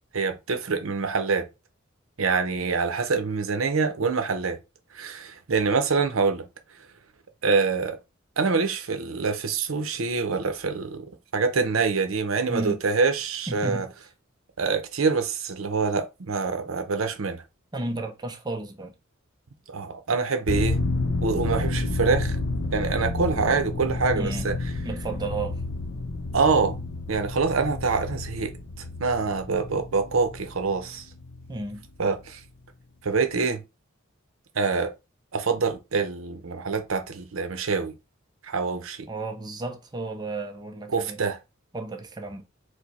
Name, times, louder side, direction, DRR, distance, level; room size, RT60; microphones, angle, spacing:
voice 1, 0.1-1.5 2.2-4.6 4.9-6.4 7.4-8.0 8.4-11.1 11.3-13.9 14.6-17.4 19.7-20.8 21.2-22.4 22.7-24.5 26.3-26.8 27.1-28.5 29.0-31.0 32.0-32.4 33.0-33.6 34.6-34.9 35.3-37.9 38.4-39.1 40.9-41.4, right 4 dB, 75° right, 0.7 m, -25 dB
voice 2, 13.5-13.8 17.7-18.9 24.2-24.5 24.8-25.6 31.5-31.8 39.1-41.2 41.7-42.4, right 2 dB, 20° right, 0.6 m, -33 dB
sound 1, 20.5-31.8 32.1-32.2, left 2 dB, 60° left, 0.6 m, -30 dB
4.8 x 2.2 x 4.1 m
head